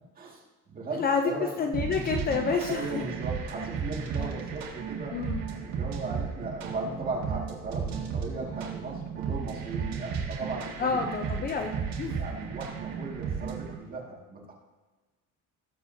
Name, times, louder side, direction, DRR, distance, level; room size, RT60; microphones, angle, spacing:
voice 1, 0.2-1.5 2.7-5.2 5.6-11.1 11.5-11.7 12.2-14.5, right 3 dB, 25° right, -2 dB, 2.1 m, -37 dB
voice 2, 0.9-3.0 5.1-5.4 10.8-12.2, left 5 dB, 30° left, 4 dB, 0.6 m, -29 dB
sound 1, 1.7-13.7, right 6 dB, 55° right, 1.9 m, -34 dB
18.5 x 7.2 x 2.8 m, 1.3 s
cardioid pair, 175°, 32 cm